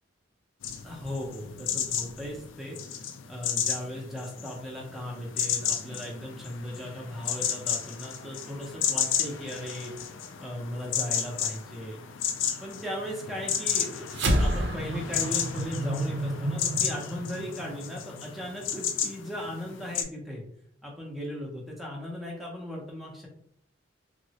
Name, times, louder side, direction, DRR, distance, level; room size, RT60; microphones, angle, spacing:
sound 1, 0.6-20.0, left 8 dB, 75° left, 0.4 m, -33 dB
voice 1, 0.8-3.0 3.3-9.9 10.4-12.0 12.6-14.1 14.4-20.4 20.8-23.3, equal, ahead, -3 dB, 0.6 m, -37 dB
sound 2, 14.1-18.7, right 1 dB, 60° right, 0.5 m, -30 dB
3.6 x 2.0 x 2.8 m, 0.67 s
head